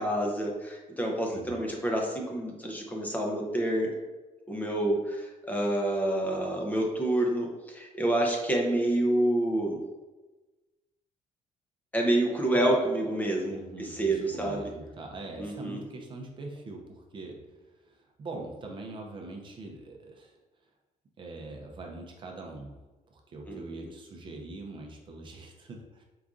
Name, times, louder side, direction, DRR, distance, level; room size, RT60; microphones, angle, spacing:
voice 1, 0.0-3.9 4.5-9.8 11.9-14.7 15.4-15.8 23.5-23.9, right 1 dB, 10° left, -1 dB, 0.6 m, -28 dB
voice 2, 1.3-1.6 12.5-12.6 13.5-17.4 17.8-20.4 21.2-22.7 23.1-26.0, right 2 dB, 35° right, 1 dB, 0.6 m, -42 dB
4.7 x 2.6 x 3.6 m, 1.2 s
cardioid pair, 150°, 14 cm